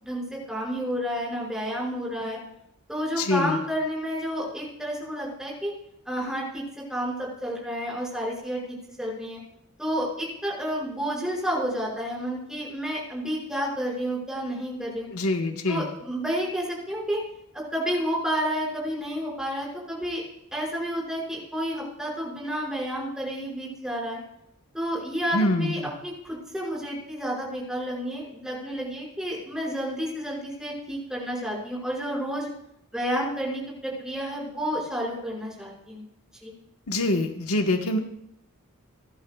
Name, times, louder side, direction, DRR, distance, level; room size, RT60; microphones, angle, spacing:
voice 1, 0.0-2.4 2.9-5.7 6.1-8.6 9.0-9.4 9.8-15.1 15.7-17.2 17.5-20.2 20.5-24.2 24.7-32.5 32.9-36.0 36.4-36.5, equal, 5° right, -3 dB, 5.5 m, -30 dB
voice 2, 3.2-3.6 15.1-15.9 25.3-25.9 36.9-38.0, left 2 dB, 75° left, 4 dB, 1.3 m, -25 dB
29.5 x 11.5 x 2.3 m, 0.75 s
head